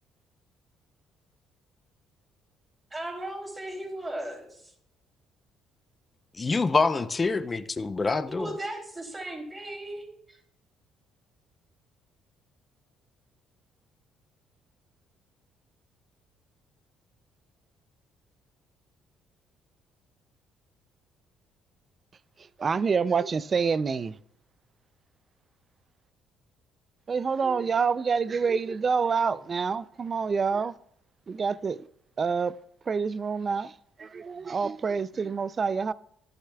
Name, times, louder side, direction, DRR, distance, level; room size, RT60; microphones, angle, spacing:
voice 1, 2.9-4.7 8.3-10.4, right 1 dB, 20° right, 3.0 m, -37 dB
voice 2, 6.4-8.5, left 4 dB, 25° left, 0.6 m, -26 dB
voice 3, 22.6-24.2 27.1-30.7 31.3-31.8 32.2-32.6 32.9-33.7 34.0-35.9, right 5 dB, 35° right, 0.3 m, -27 dB
11.5 x 11.5 x 2.3 m
cardioid pair, 90°, 0 cm